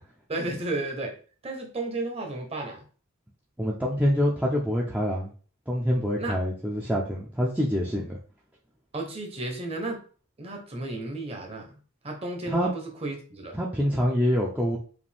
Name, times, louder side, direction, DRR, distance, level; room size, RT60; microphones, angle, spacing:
voice 1, 0.3-1.1 1.4-2.8 6.2-6.3 8.9-10.0 10.4-11.7 12.0-13.6, right 2 dB, 25° right, 2 dB, 0.9 m, -33 dB
voice 2, 3.6-5.3 5.7-8.2 12.5-12.7 13.5-14.8, equal, 5° right, -4 dB, 0.5 m, -26 dB
5.0 x 2.6 x 3.4 m, 0.40 s
head